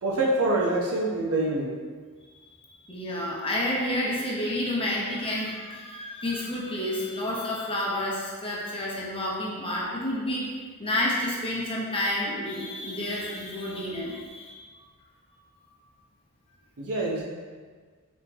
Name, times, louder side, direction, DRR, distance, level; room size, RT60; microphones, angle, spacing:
voice 1, 0.0-1.8 16.8-17.2, right 2 dB, 75° right, -4 dB, 0.7 m, -25 dB
voice 2, 2.9-14.6, left 1 dB, 25° left, -4 dB, 0.8 m, -30 dB
4.3 x 3.6 x 2.8 m, 1.5 s
head